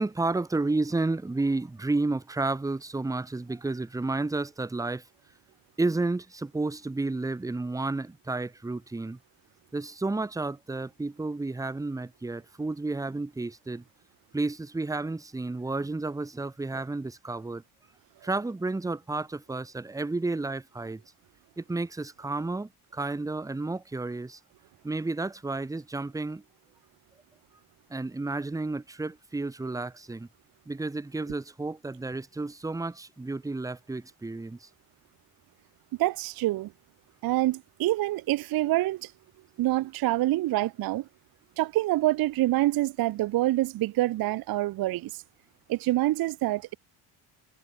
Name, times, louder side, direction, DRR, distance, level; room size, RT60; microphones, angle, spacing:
voice 1, 0.0-5.0 5.8-9.2 9.7-13.8 14.3-17.6 18.2-21.0 21.6-24.4 24.8-26.4 27.9-30.3 30.7-34.7, right 3 dB, 5° right, 1.0 m, -31 dB
voice 2, 36.0-36.7 37.2-39.1 39.6-41.1 41.6-45.2 45.7-46.8, right 16 dB, 50° right, 0.6 m, -26 dB
cardioid pair, 165°, 48 cm